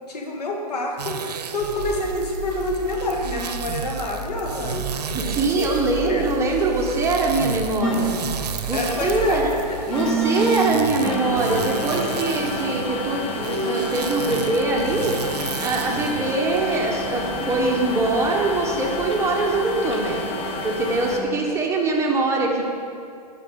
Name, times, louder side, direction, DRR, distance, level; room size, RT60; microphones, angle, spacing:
voice 1, 0.1-5.8 6.0-6.3 8.7-9.4 9.7-10.0, left 2 dB, 75° left, 1 dB, 1.8 m, -27 dB
sound 1, 1.0-16.8, right 7 dB, 80° right, 0.7 m, -34 dB
sound 2, 1.6-9.7, right 5 dB, 55° right, 0.9 m, -34 dB
voice 2, 5.1-8.1 8.7-9.5 9.9-15.3 15.6-20.2 20.6-22.6, right 2 dB, 15° right, -1 dB, 1.3 m, -23 dB
sound 3, 7.8-21.2, equal, 25° left, 1.1 m, -28 dB
11.5 x 5.6 x 5.3 m, 2.4 s
hypercardioid pair, 125°, 20 cm